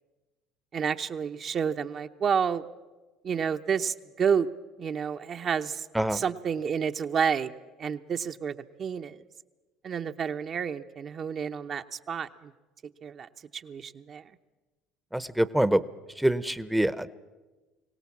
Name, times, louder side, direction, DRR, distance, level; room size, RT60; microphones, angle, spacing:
voice 1, 0.7-2.6 3.2-4.5 4.8-5.9 6.1-7.5 7.8-9.2 9.8-12.5 13.0-14.2, right 7 dB, 45° right, 7 dB, 0.8 m, -30 dB
voice 2, 15.1-15.8 16.2-17.1, right 1 dB, 5° right, 15 dB, 0.8 m, -25 dB
23.0 x 17.5 x 7.3 m, 1.2 s
supercardioid pair, 80°, 0 cm